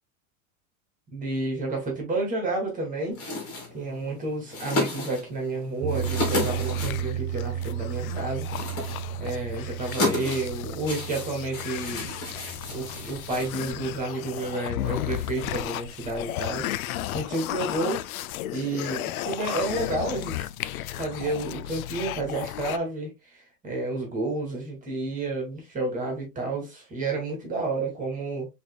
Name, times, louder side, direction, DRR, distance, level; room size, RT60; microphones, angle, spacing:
voice 1, 1.1-3.2 3.7-8.5 9.2-12.1 12.7-18.0 18.5-20.5 20.9-28.5, right 2 dB, 20° right, 2.3 m, -30 dB
sound 1, 3.1-14.0, left 2 dB, 35° left, 2.5 m, -34 dB
sound 2, 5.8-16.0, right 11 dB, 70° right, 0.7 m, -35 dB
sound 3, 5.9-22.8, left 13 dB, 90° left, 0.5 m, -35 dB
6.2 x 3.5 x 2.2 m
supercardioid pair, 140°, 42 cm